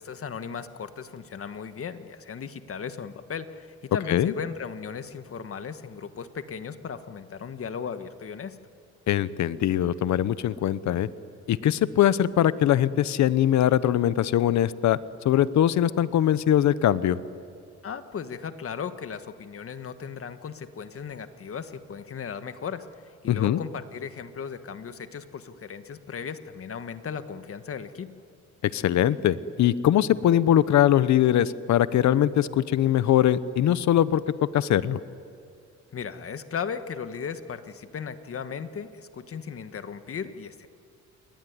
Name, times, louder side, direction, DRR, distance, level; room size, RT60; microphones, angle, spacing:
voice 1, 0.0-8.6 17.8-28.2 35.9-40.7, left 6 dB, 50° left, 10 dB, 1.6 m, -36 dB
voice 2, 9.1-11.1 11.5-15.0 15.2-17.2 23.3-23.6 28.7-35.0, left 11 dB, 70° left, 16 dB, 0.9 m, -22 dB
28.5 x 21.5 x 9.7 m, 2.5 s
cardioid pair, 90°, 30 cm